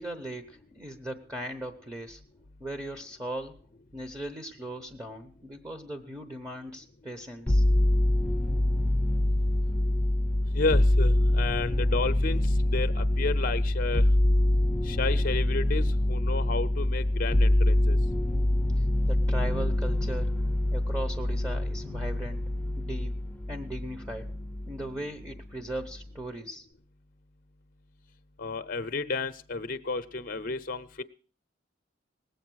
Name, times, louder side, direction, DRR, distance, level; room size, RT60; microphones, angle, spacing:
voice 1, 0.0-2.2 2.6-3.6 3.9-7.6 18.8-20.3 20.7-22.4 22.8-23.1 23.5-24.4 24.6-26.7, right 1 dB, 15° right, 6 dB, 1.0 m, -38 dB
sound 1, 7.5-24.9 25.2-26.0, left 1 dB, 10° left, 0.7 m, -25 dB
voice 2, 10.5-12.4 12.7-14.0 14.8-18.0 28.4-31.0, left 3 dB, 45° left, 10 dB, 0.7 m, -32 dB
19.0 x 8.0 x 6.2 m, 0.43 s
head